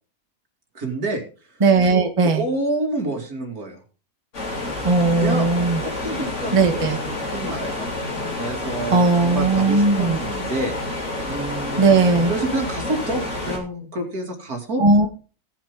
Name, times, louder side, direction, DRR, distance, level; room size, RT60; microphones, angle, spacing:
voice 1, 0.7-1.2 1.5-1.6 2.2-3.8 5.2-5.5 5.8-7.9 8.4-11.0 11.3-14.8, right 2 dB, 75° right, 3 dB, 3.0 m, -28 dB
voice 2, 1.6-2.4 4.8-5.8 6.5-7.0 8.9-10.2 11.8-12.3 14.8-15.1, right 3 dB, 20° right, 6 dB, 1.2 m, -17 dB
sound 1, 4.3-13.6, left 2 dB, 50° left, 3.4 m, -29 dB
17.0 x 7.4 x 3.7 m, 0.37 s
omnidirectional pair, 1.6 m